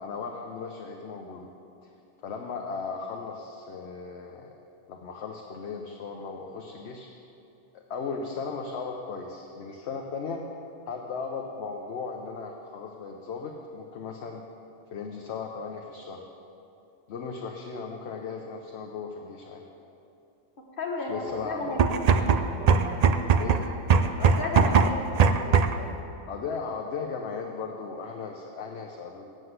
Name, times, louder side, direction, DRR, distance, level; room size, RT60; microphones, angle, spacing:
voice 1, 0.0-1.5 1.8-1.9 2.2-4.5 4.9-7.1 7.7-10.4 10.9-14.4 14.9-16.3 17.1-19.6 21.1-21.8 23.4-23.6 26.3-29.3, left 5 dB, 65° left, 2 dB, 1.0 m, -36 dB
voice 2, 20.8-22.0 24.2-25.3, left 2 dB, 50° left, -1 dB, 1.6 m, -33 dB
sound 1, 21.7-25.9, right 5 dB, 65° right, 0.4 m, -21 dB
7.7 x 7.7 x 7.9 m, 2.8 s
omnidirectional pair, 1.2 m